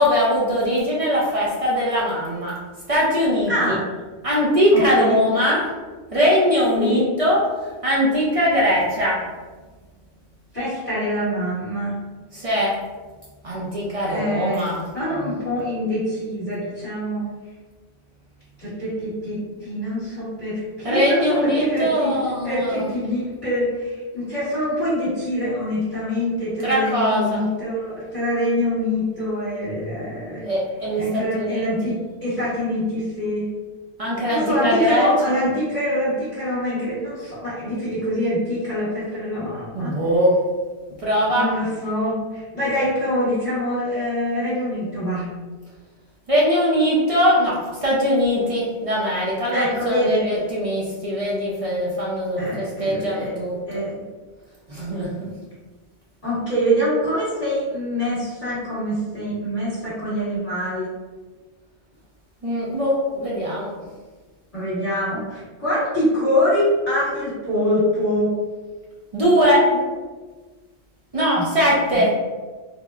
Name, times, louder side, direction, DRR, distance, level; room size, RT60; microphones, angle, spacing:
voice 1, 0.0-2.6 2.9-3.8 4.2-5.6 6.1-7.4 7.8-9.2 12.3-12.7 13.4-14.8 15.1-15.4 20.8-22.9 26.6-27.4 30.5-31.0 31.3-31.7 34.0-35.1 39.7-40.4 41.0-41.5 46.3-53.8 54.7-55.3 62.4-63.7 69.1-69.7 71.1-72.1, equal, 40° right, -5 dB, 0.5 m, -21 dB
voice 2, 3.5-3.8 4.7-5.1 6.8-7.0 10.5-12.0 14.1-17.3 18.6-22.2 22.4-30.4 31.0-33.5 34.3-39.9 41.3-45.2 49.5-50.2 52.4-53.3 53.7-54.0 56.2-60.9 64.5-68.3 69.7-69.8 71.3-71.5 71.9-72.0, equal, 30° left, -13 dB, 1.3 m, -24 dB
3.3 x 2.1 x 2.3 m, 1.3 s
omnidirectional pair, 1.1 m